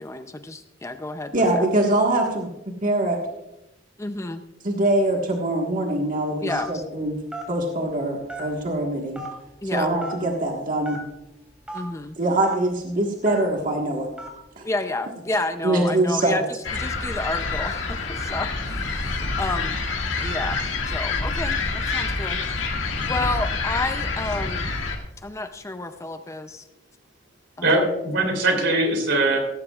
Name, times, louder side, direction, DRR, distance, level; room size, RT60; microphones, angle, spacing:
voice 1, 0.0-1.7 4.0-4.4 6.4-6.8 9.6-9.9 11.7-12.2 14.6-19.7 20.2-20.6 20.9-22.4 23.1-24.7 25.2-26.7 27.6-27.8, left 2 dB, 15° left, 8 dB, 0.5 m, -30 dB
voice 2, 1.3-2.5 2.8-3.2 4.6-7.2 7.5-9.2 9.7-11.0 12.2-14.1 14.6-14.7 15.6-16.4, right 1 dB, 45° right, 0 dB, 1.6 m, -23 dB
Telephone, 6.5-6.8 7.3-7.5 8.3-8.7 9.1-9.3 10.0-10.2 10.8-11.0 11.7-11.8 12.4-12.5 13.2-13.5 14.2-14.4, right 2 dB, 5° right, 3.1 m, -34 dB
sound 1, 16.6-25.0, left 3 dB, 85° left, 2.1 m, -27 dB
voice 3, 27.6-29.4, right 2 dB, 70° right, 2 dB, 3.4 m, -21 dB
16.5 x 15.0 x 2.4 m, 0.92 s
head